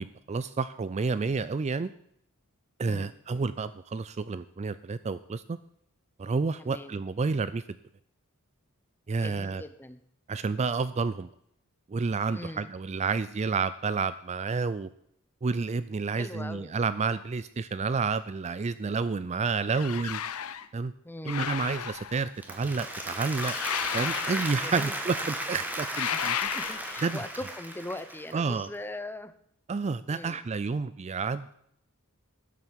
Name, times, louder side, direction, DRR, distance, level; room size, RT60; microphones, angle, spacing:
voice 1, 0.0-1.9 2.8-5.6 6.2-7.6 9.1-9.6 10.3-11.3 11.9-14.9 15.4-20.2 20.7-20.9 21.2-23.5 23.9-26.3 27.0-27.2 28.3-28.7 29.7-31.5, right 4 dB, 30° right, 15 dB, 0.4 m, -30 dB
voice 2, 6.6-7.0 9.2-10.0 12.3-12.7 16.1-16.7 21.0-21.5 24.6-25.0 26.1-26.2 26.5-29.3 30.1-30.4, left 1 dB, 10° left, 11 dB, 0.8 m, -40 dB
sound 1, 19.7-20.7 21.3-22.3 23.4-25.0 25.9-27.1, left 9 dB, 70° left, 0.7 m, -34 dB
Applause, 22.2-28.5, right 1 dB, 10° right, 1.7 m, -35 dB
12.5 x 7.9 x 7.4 m, 0.72 s
head